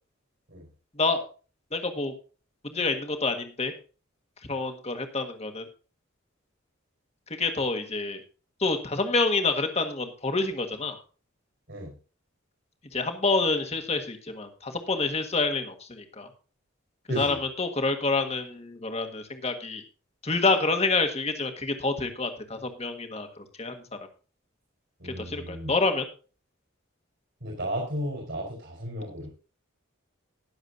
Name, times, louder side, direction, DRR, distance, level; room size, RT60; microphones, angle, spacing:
voice 1, 0.9-1.3 1.7-2.1 2.6-3.7 4.5-5.7 7.3-8.2 8.6-11.0 12.9-16.3 17.1-19.8 20.2-23.8 25.0-26.0, left 3 dB, 30° left, 6 dB, 1.6 m, -28 dB
voice 2, 17.1-17.4 25.0-25.7 27.4-29.3, equal, 65° right, 1 dB, 4.5 m, -34 dB
20.0 x 7.2 x 2.7 m, 0.36 s
head